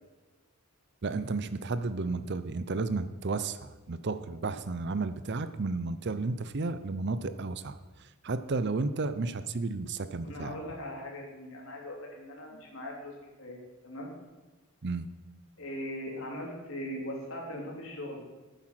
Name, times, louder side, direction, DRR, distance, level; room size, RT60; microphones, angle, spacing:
voice 1, 1.0-7.8 8.2-10.6 14.8-15.1, right 3 dB, 50° right, 12 dB, 0.6 m, -32 dB
voice 2, 10.2-14.1 15.6-18.2, left 1 dB, 60° left, -1 dB, 3.2 m, -40 dB
11.5 x 9.0 x 6.0 m, 1.2 s
head